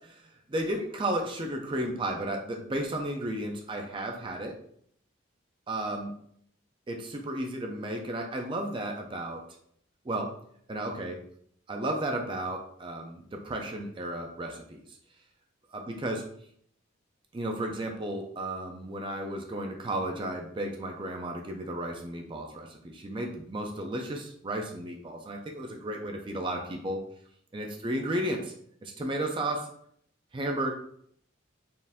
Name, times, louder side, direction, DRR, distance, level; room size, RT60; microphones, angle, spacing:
voice 1, 0.2-4.6 5.7-6.1 6.9-9.4 10.0-10.3 10.7-11.2 11.7-14.6 14.9-15.0 15.7-16.3 17.3-27.0 27.5-28.5 28.8-29.7 30.3-30.7, right 1 dB, 25° right, 3 dB, 0.4 m, -33 dB
4.3 x 2.5 x 3.5 m, 0.66 s
head